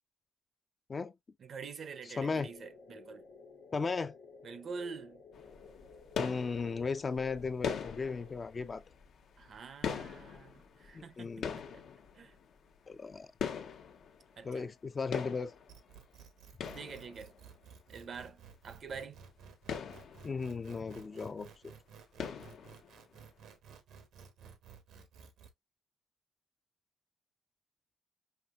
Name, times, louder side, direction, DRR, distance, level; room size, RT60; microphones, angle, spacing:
voice 1, 1.4-3.2 4.4-5.2 9.4-11.8 12.1-12.4 14.4-14.7 16.7-17.3 17.9-19.2, right 5 dB, 55° right, 0.6 m, -46 dB
sound 1, 2.2-8.3, left 4 dB, 90° left, 1.3 m, -55 dB
voice 2, 2.2-2.5 3.7-4.1 6.2-8.8 10.9-11.6 12.9-13.3 14.4-15.5 20.2-21.5, left 4 dB, 35° left, 0.4 m, -36 dB
sound 2, 5.3-14.9 15.1-17.6 18.1-18.2 18.5-18.6 18.8-19.0 19.4-21.2 21.5-21.8 22.2-23.2, left 7 dB, 65° left, 0.7 m, -42 dB
sound 3, 15.7-25.5, right 6 dB, 80° right, 0.9 m, -55 dB
5.7 x 2.8 x 2.3 m
cardioid pair, 90°, 0 cm